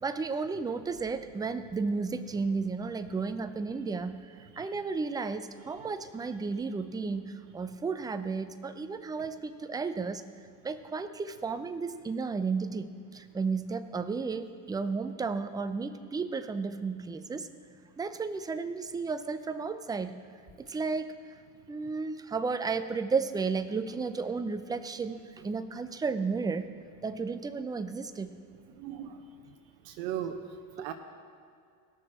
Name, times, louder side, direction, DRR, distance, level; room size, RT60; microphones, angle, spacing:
voice 1, 0.0-4.2 4.6-10.2 10.6-17.5 18.0-20.2 20.6-21.1 21.7-26.7 27.0-28.4 30.8-30.9, right 4 dB, 10° right, 10 dB, 0.4 m, -33 dB
voice 2, 4.4-4.8 20.7-20.8 28.7-29.6 29.8-30.9, right 9 dB, 70° right, 4 dB, 0.8 m, -39 dB
17.5 x 6.5 x 4.3 m, 2.3 s
supercardioid pair, 95°, 45 cm